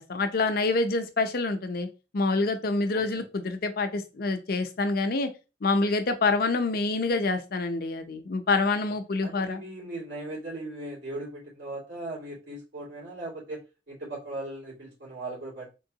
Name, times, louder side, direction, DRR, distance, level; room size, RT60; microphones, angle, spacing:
voice 1, 0.0-1.9 2.1-5.3 5.6-9.6, left 3 dB, 60° left, 8 dB, 0.6 m, -26 dB
voice 2, 2.9-3.2 9.2-15.7, right 2 dB, 85° right, -5 dB, 2.3 m, -38 dB
3.8 x 3.0 x 2.7 m, 0.29 s
head